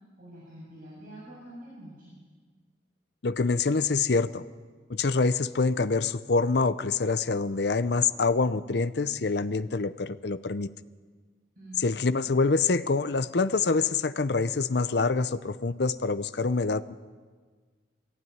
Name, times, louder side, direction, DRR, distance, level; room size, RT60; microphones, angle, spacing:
voice 1, 0.2-2.2 11.6-11.9, right 1 dB, 50° right, -7 dB, 7.2 m, -46 dB
voice 2, 3.2-4.4 4.9-10.7 11.8-17.0, left 4 dB, 60° left, 13 dB, 0.6 m, -26 dB
20.0 x 15.5 x 9.5 m, 1.5 s
head